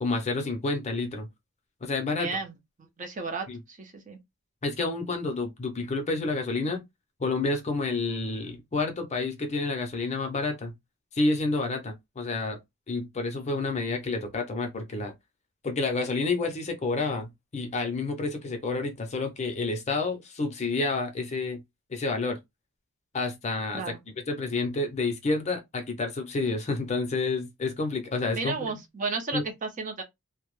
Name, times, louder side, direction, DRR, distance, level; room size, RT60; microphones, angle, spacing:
voice 1, 0.0-1.3 1.8-2.3 3.5-3.6 4.6-6.8 7.2-10.7 11.1-12.6 12.9-15.1 15.6-21.6 21.9-22.4 23.1-23.9 24.3-28.6 29.3-29.4, left 3 dB, 30° left, 0.5 m, -29 dB
voice 2, 2.1-2.5 3.0-4.2 23.7-24.0 28.3-30.0, right 4 dB, 35° right, 0.5 m, -33 dB
2.1 x 2.0 x 3.0 m
head